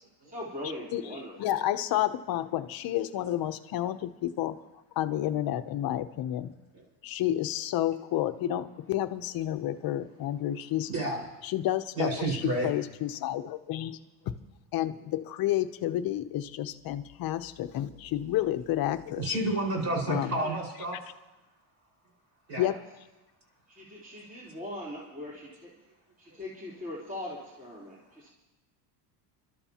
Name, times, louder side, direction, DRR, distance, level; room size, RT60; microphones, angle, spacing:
voice 1, 0.2-1.6 20.1-20.5 22.6-22.8 23.7-25.7 26.2-28.3, left 1 dB, 20° right, -6 dB, 3.6 m, -41 dB
voice 2, 1.4-4.6 5.0-6.5 7.0-10.9 11.4-14.0 14.7-19.4 20.1-20.5 22.6-22.8, left 13 dB, 50° left, 11 dB, 0.8 m, -30 dB
voice 3, 10.9-11.2 11.9-12.7 19.1-21.0 22.5-22.6 26.3-26.4, right 2 dB, 35° right, -2 dB, 5.1 m, -30 dB
30.0 x 12.5 x 2.9 m, 1.1 s
cardioid pair, 130°, 44 cm